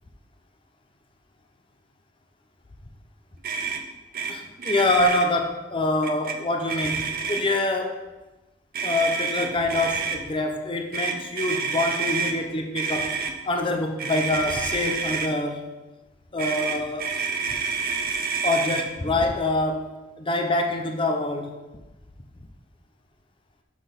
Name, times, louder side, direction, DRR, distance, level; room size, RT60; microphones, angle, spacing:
Motor vehicle (road), 3.4-3.8 4.1-4.3 4.6-5.3 6.0-6.4 6.7-7.6 8.7-10.2 10.9-12.3 12.7-13.3 14.0-15.3 16.4-18.8, right 5 dB, 45° right, 0.7 m, -28 dB
voice 1, 4.3-7.0 7.3-8.0 8.8-13.2 13.5-15.6 16.3-17.1 18.4-21.5, left 2 dB, 25° left, 4 dB, 0.6 m, -25 dB
6.1 x 6.1 x 5.1 m, 1.1 s
head